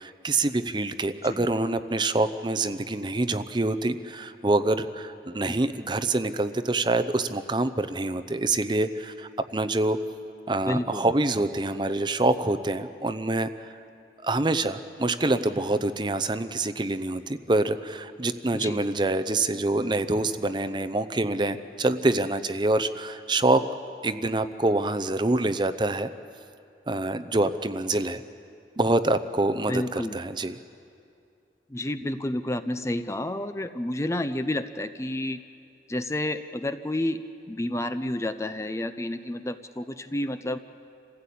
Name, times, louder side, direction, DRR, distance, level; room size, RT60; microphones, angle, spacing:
voice 1, 0.0-10.0 10.5-13.7 14.2-23.7 24.0-26.1 26.9-28.2 28.8-30.6, right 2 dB, 25° right, 11 dB, 0.6 m, -26 dB
voice 2, 10.7-11.1 18.5-18.8 29.7-30.2 31.7-35.4 35.9-40.6, left 1 dB, 15° left, 10 dB, 0.5 m, -30 dB
27.5 x 15.5 x 8.5 m, 2.5 s
head